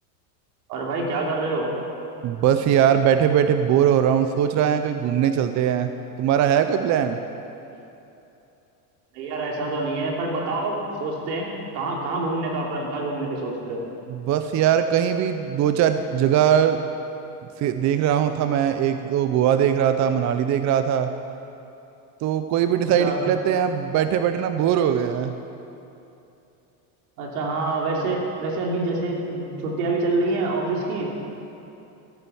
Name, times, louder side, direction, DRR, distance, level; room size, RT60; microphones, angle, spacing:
voice 1, 0.7-1.7 9.1-13.8 23.0-23.2 27.2-31.1, right 2 dB, 85° right, -1 dB, 3.1 m, -26 dB
voice 2, 2.2-5.9 6.2-7.2 14.1-16.8 17.6-21.1 22.2-25.3, right 9 dB, 40° right, 8 dB, 0.7 m, -21 dB
14.5 x 9.1 x 7.1 m, 2.9 s
supercardioid pair, 125°, 46 cm